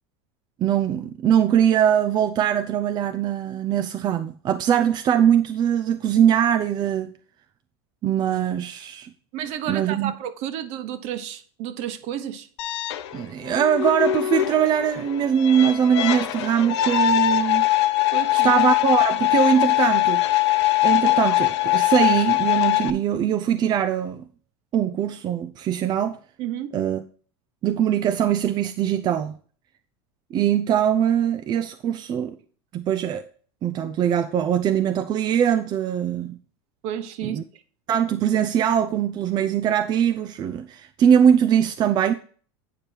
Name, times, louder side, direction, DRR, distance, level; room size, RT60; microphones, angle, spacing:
voice 1, 0.6-7.1 8.0-9.1 9.7-10.1 13.1-17.7 18.3-20.2 20.8-24.2 24.7-26.2 26.7-27.0 27.6-29.4 30.3-32.4 32.7-33.3 33.6-36.4 37.2-37.4 37.9-42.1, right 9 dB, 30° right, 0.5 m, -22 dB
voice 2, 9.3-12.5 18.1-18.5 26.4-26.7 36.8-37.4, right 10 dB, 50° right, 1.1 m, -31 dB
sound 1, 12.6-22.9, left 14 dB, 85° left, 0.8 m, -22 dB
9.2 x 5.1 x 4.5 m
supercardioid pair, 135°, 14 cm